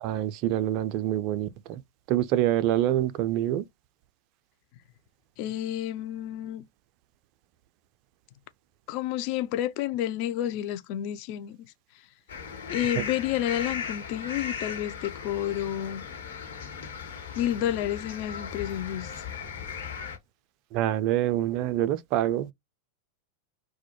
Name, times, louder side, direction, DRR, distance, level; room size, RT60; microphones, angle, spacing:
voice 1, 0.0-1.8 2.1-3.6 13.0-13.1 20.7-22.5, right 13 dB, 40° right, 0.3 m, -26 dB
voice 2, 5.4-6.6 8.9-11.6 12.7-16.0 17.4-19.1, left 12 dB, 45° left, 0.3 m, -30 dB
sound 1, 12.3-20.2, left 6 dB, 65° left, 1.0 m, -37 dB
2.2 x 2.0 x 2.9 m
figure-of-eight pair, 90°, 0 cm